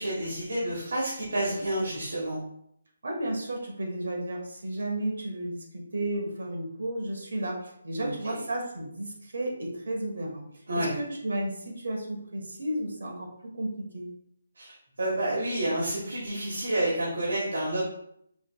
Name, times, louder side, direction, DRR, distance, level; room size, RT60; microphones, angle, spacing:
voice 1, 0.0-2.4 8.0-8.4 10.7-10.9 14.5-17.8, right 1 dB, 85° right, -6 dB, 1.4 m, -29 dB
voice 2, 3.0-10.4 10.7-14.1, right 1 dB, 65° right, 0 dB, 1.3 m, -33 dB
4.8 x 3.0 x 2.3 m, 0.72 s
hypercardioid pair, 175°, 0 cm